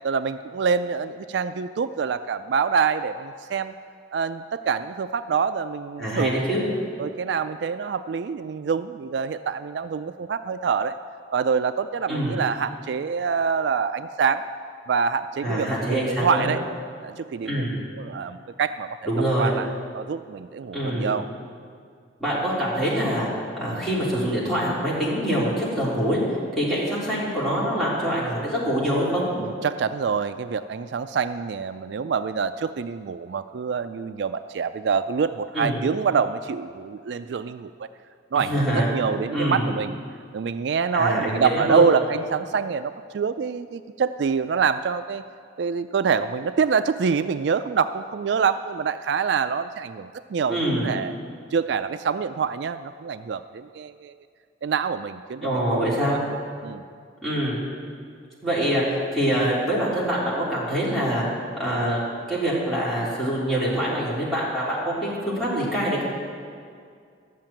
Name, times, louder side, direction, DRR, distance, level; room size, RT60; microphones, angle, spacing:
voice 1, 0.0-3.7 4.1-6.5 7.0-11.0 11.3-14.5 14.9-16.6 17.0-17.7 18.0-19.1 19.4-19.7 19.9-21.3 29.4-37.9 38.3-40.0 40.3-45.2 45.6-51.1 51.5-54.2 54.6-56.2 56.6-56.8, right 6 dB, 65° right, 11 dB, 0.3 m, -26 dB
voice 2, 6.0-6.6 12.1-12.4 15.4-16.5 17.4-17.7 19.1-19.5 20.7-21.2 22.2-23.3 23.6-26.2 26.5-29.2 35.5-35.8 38.4-38.9 39.3-39.7 40.9-41.8 50.5-50.9 55.4-56.2 57.2-57.6 58.4-61.2 61.6-66.0, equal, ahead, -9 dB, 3.7 m, -25 dB
12.0 x 7.6 x 8.9 m, 2.2 s
head